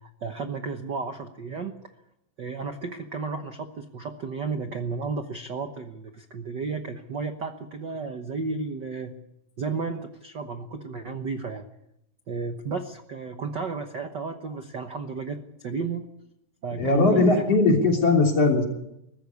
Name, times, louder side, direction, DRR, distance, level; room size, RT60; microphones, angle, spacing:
voice 1, 0.0-1.7 2.4-9.1 9.6-11.7 12.3-16.0 16.6-17.8, right 4 dB, 75° right, 6 dB, 1.0 m, -33 dB
voice 2, 16.8-18.6, left 3 dB, 45° left, 1 dB, 4.2 m, -19 dB
21.5 x 15.0 x 9.5 m, 0.83 s
omnidirectional pair, 3.9 m